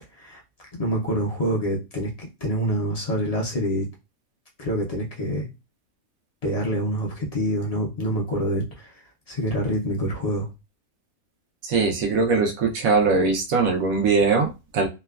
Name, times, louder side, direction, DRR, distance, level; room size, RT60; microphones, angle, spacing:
voice 1, 0.7-3.9 4.6-5.5 6.4-9.0 9.3-10.5, equal, 45° left, -2 dB, 0.4 m, -26 dB
voice 2, 11.6-14.9, right 4 dB, 80° right, 2 dB, 1.1 m, -21 dB
2.9 x 2.2 x 2.3 m, 0.26 s
omnidirectional pair, 1.5 m